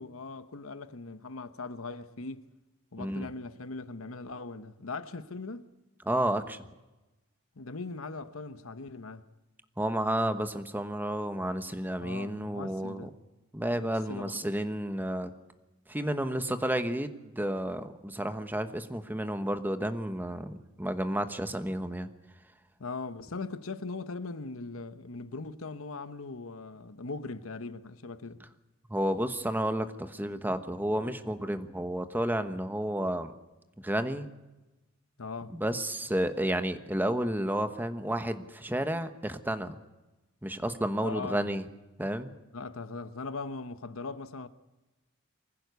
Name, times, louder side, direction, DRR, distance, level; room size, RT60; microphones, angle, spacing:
voice 1, 0.0-2.5 2.9-5.7 7.6-9.2 12.0-13.1 13.7-14.4 22.8-28.4 35.2-35.6 41.0-41.4 42.5-44.5, left 3 dB, 70° left, 1.0 m, -40 dB
voice 2, 3.0-3.3 6.1-6.6 9.8-13.1 13.5-15.3 15.9-22.1 28.9-33.3 33.8-34.3 35.5-39.8 40.4-41.6 42.0-42.3, right 1 dB, 10° right, 1.1 m, -31 dB
24.0 x 16.0 x 8.2 m
head